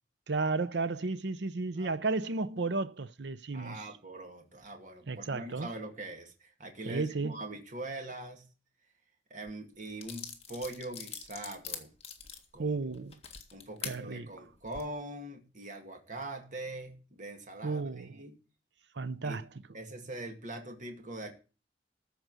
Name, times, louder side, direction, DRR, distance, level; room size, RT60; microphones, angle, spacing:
voice 1, 0.3-3.8 5.1-5.7 6.9-7.4 12.6-13.1 13.8-14.3 17.6-18.1 19.0-19.4, right 3 dB, 65° right, 0.7 m, -33 dB
voice 2, 3.5-8.5 9.3-11.9 12.5-12.8 13.5-18.4 19.2-19.4 19.7-21.3, right 2 dB, 45° right, 2.1 m, -42 dB
sound 1, 9.5-9.6 10.0-14.0 14.6-14.8, left 7 dB, 35° left, 1.8 m, -43 dB
14.0 x 5.1 x 8.0 m
head